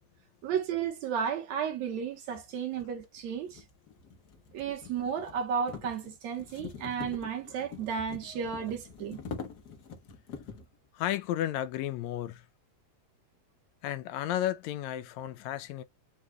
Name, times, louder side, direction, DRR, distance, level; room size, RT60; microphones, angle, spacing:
voice 1, 0.4-3.6 4.5-9.2, right 7 dB, 70° right, 2.4 m, -33 dB
sound 1, 1.9-2.0 2.7-10.7, left 5 dB, 65° left, 1.0 m, -45 dB
voice 2, 10.9-12.4 13.8-15.8, left 12 dB, 80° left, 1.8 m, -33 dB
6.3 x 2.4 x 3.1 m
omnidirectional pair, 3.3 m